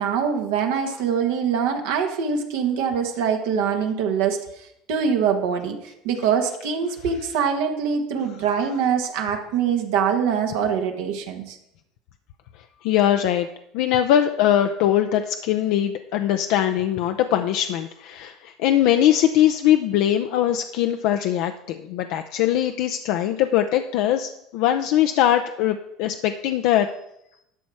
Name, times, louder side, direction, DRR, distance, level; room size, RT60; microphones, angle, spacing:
voice 1, 0.0-11.6, right 7 dB, 75° right, 4 dB, 1.4 m, -24 dB
voice 2, 12.8-13.5 13.7-26.9, left 11 dB, 70° left, 6 dB, 0.5 m, -21 dB
11.5 x 6.2 x 4.7 m, 0.79 s
supercardioid pair, 90°, 0 cm